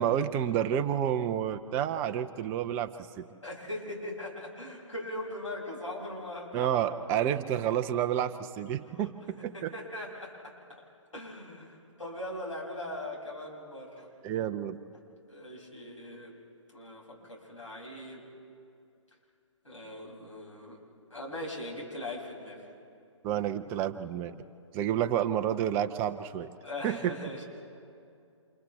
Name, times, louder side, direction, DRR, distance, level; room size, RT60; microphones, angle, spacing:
voice 1, 0.0-2.9 3.2-3.3 6.5-9.7 14.2-14.8 23.2-24.4 24.7-26.5 26.8-27.1, right 10 dB, 15° right, 9 dB, 0.5 m, -29 dB
voice 2, 3.4-6.8 8.8-9.1 9.5-10.5 11.1-14.1 15.3-16.3 16.7-18.2 19.6-20.8 21.1-22.7 26.6-27.4, left 1 dB, 75° left, -4 dB, 7.1 m, -40 dB
30.0 x 27.5 x 3.5 m, 2.5 s
figure-of-eight pair, 130°, 16 cm